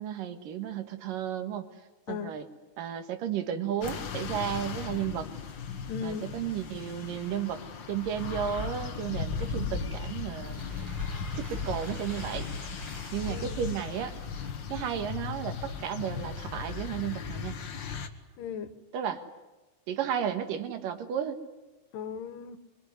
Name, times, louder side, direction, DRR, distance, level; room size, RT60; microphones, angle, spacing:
voice 1, 0.0-1.7 2.1-2.4 2.8-5.3 6.0-7.6 7.9-10.6 11.4-12.5 13.1-14.1 14.7-17.5 18.9-19.2 19.9-21.4, right 9 dB, 90° right, 8 dB, 3.3 m, -33 dB
sound 1, 3.8-18.1, left 5 dB, 50° left, 1.5 m, -37 dB
voice 2, 5.9-6.3 13.3-13.6 18.4-18.8 21.9-22.6, left 7 dB, 90° left, 12 dB, 2.9 m, -37 dB
sound 2, 10.3-15.1, right 1 dB, 50° right, 9.2 m, -50 dB
24.5 x 23.5 x 9.7 m, 1.1 s
omnidirectional pair, 3.8 m